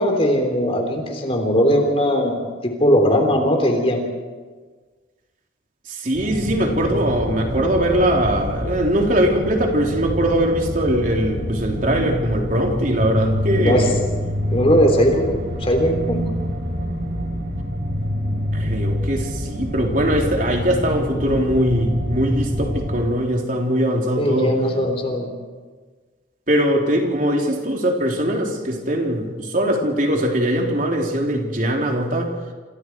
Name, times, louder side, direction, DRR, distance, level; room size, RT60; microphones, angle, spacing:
voice 1, 0.0-4.0 13.5-13.9 14.5-16.3 24.2-25.3, equal, 30° left, 3 dB, 3.5 m, -19 dB
voice 2, 6.0-13.9 18.5-24.6 26.5-32.3, equal, 45° right, 1 dB, 3.7 m, -21 dB
sound 1, 6.1-23.0, equal, 70° right, 7.8 m, -26 dB
28.0 x 27.0 x 4.7 m, 1.4 s
head